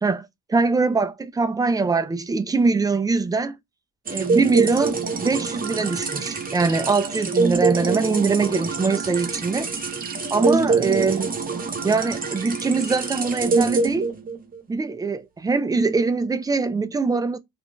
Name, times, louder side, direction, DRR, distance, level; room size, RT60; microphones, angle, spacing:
voice 1, 0.0-3.6 4.1-9.7 10.3-11.4 11.8-14.1 14.7-17.4, right 4 dB, 15° right, 0.3 m, -23 dB
sound 1, 4.1-14.6, right 4 dB, 30° right, 0.8 m, -25 dB
2.5 x 2.0 x 3.0 m
cardioid pair, 90°, 30 cm